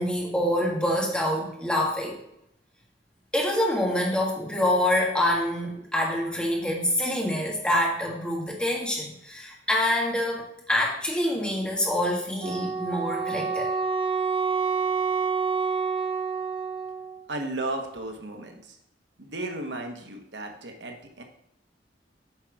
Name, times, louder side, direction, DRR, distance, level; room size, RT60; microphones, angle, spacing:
voice 1, 0.0-2.2 3.3-13.7, left 1 dB, 5° left, -2 dB, 1.6 m, -26 dB
Wind instrument woodwind instrument, 12.4-17.2, right 5 dB, 30° right, 0.8 m, -28 dB
voice 2, 17.3-18.8 19.2-21.2, right 2 dB, 90° right, 3 dB, 1.2 m, -34 dB
8.1 x 4.6 x 4.8 m, 0.76 s
head